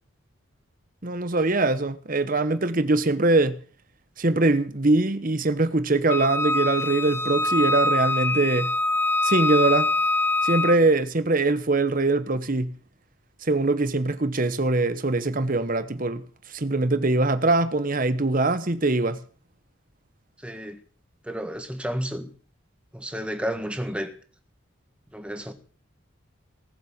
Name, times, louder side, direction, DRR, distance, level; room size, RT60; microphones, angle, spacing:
voice 1, 1.0-3.6 4.2-8.7 9.2-9.9 10.4-12.7 13.4-16.2 16.5-19.2, right 2 dB, 40° right, 1.0 m, -22 dB
Wind instrument woodwind instrument, 6.1-10.8, left 2 dB, 10° left, 0.7 m, -24 dB
voice 2, 20.4-20.8 21.2-22.3 22.9-24.1 25.1-25.5, equal, 5° right, 1.5 m, -31 dB
18.5 x 7.4 x 7.3 m
head